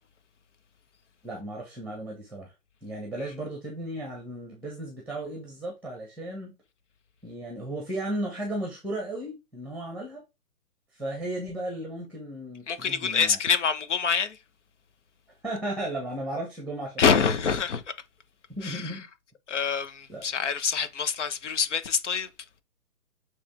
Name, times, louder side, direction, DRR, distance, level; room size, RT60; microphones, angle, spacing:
voice 1, 1.2-2.5 2.8-6.5 7.2-10.2 10.9-13.4 15.4-17.4 18.5-19.1 20.1-20.3, right 1 dB, ahead, 1.3 m, -35 dB
voice 2, 12.7-14.3 17.0-17.8 18.6-18.8 19.5-22.3, left 6 dB, 50° left, 1.1 m, -26 dB
8.1 x 3.4 x 3.7 m
figure-of-eight pair, 130°, 46 cm